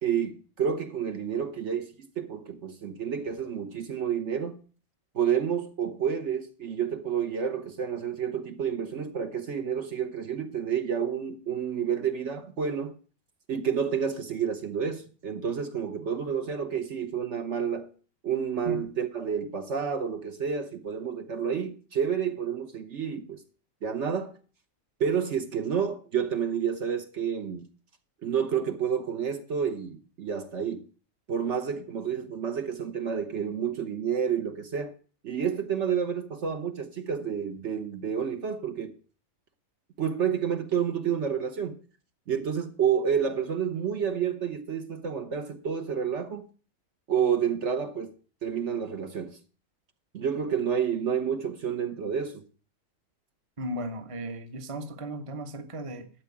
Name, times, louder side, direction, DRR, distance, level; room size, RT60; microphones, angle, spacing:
voice 1, 0.0-4.6 5.1-12.9 13.5-17.9 18.2-23.4 23.8-24.3 25.0-27.7 28.2-30.9 31.3-34.9 35.2-38.9 40.0-41.8 42.3-46.4 47.1-48.1 48.4-49.4 50.1-52.4, right 7 dB, 60° right, 1.3 m, -29 dB
voice 2, 53.6-56.1, right 1 dB, 25° right, 1.0 m, -36 dB
12.5 x 4.7 x 8.4 m
omnidirectional pair, 1.4 m